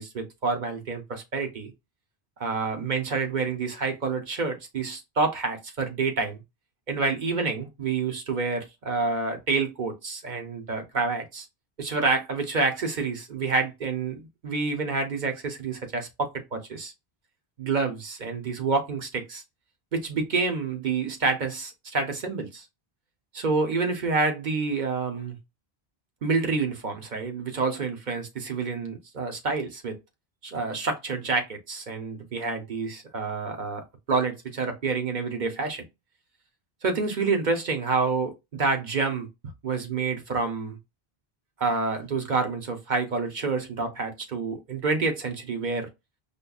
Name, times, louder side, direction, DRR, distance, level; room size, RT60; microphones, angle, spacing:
voice 1, 0.0-1.7 2.4-6.4 6.9-11.4 11.8-16.9 17.6-19.4 19.9-22.6 23.3-25.4 26.2-30.0 30.4-35.8 36.8-39.3 39.6-40.8 41.6-45.9, right 4 dB, 50° right, 0.8 m, -28 dB
5.2 x 2.2 x 2.3 m
omnidirectional pair, 1.0 m